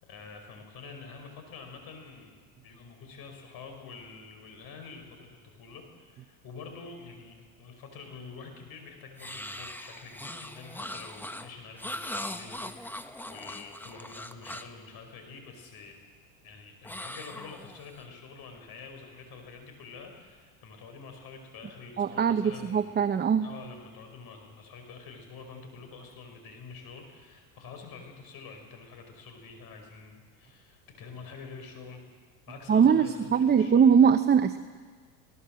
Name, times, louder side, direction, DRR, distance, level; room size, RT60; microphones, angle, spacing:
voice 1, 0.0-2.4 2.6-16.0 16.4-23.0 23.4-32.0 32.5-33.9, left 4 dB, 55° left, 5 dB, 5.4 m, -47 dB
sound 1, 9.2-14.8 16.8-18.0, left 1 dB, 5° left, 1.1 m, -40 dB
voice 2, 22.0-23.5 32.7-34.6, right 7 dB, 20° right, 9 dB, 0.9 m, -21 dB
24.0 x 18.0 x 7.7 m, 1.5 s
supercardioid pair, 105°, 45 cm